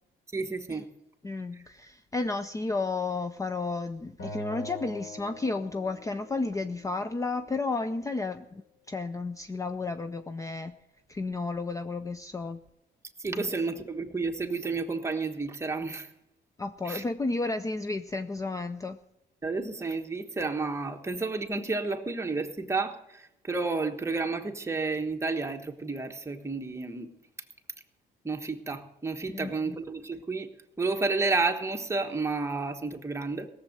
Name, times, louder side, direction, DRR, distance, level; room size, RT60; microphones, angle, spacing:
voice 1, 0.3-0.9 1.5-1.6 13.2-16.1 16.8-17.0 19.4-27.1 28.2-30.5 30.8-33.5, right 3 dB, 15° right, 1.3 m, -31 dB
voice 2, 1.2-10.7 11.1-12.6 13.3-13.5 16.6-19.0 29.3-29.8, left 3 dB, 20° left, 0.5 m, -32 dB
Acoustic guitar, 4.2-7.4, left 2 dB, 65° left, 3.6 m, -43 dB
17.0 x 7.4 x 7.8 m
cardioid pair, 115°, 19 cm